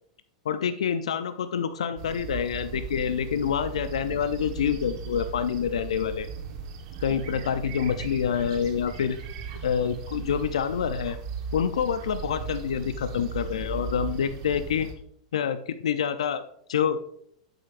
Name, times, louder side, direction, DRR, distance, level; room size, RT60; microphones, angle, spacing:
voice 1, 0.5-6.3 7.0-9.2 9.6-11.2 11.5-14.9 15.3-16.4 16.7-17.0, left 8 dB, 85° left, 11 dB, 0.5 m, -27 dB
sound 1, 2.0-14.9, right 6 dB, 65° right, 1.3 m, -37 dB
8.7 x 7.9 x 2.5 m, 0.69 s
hypercardioid pair, 105°, 3 cm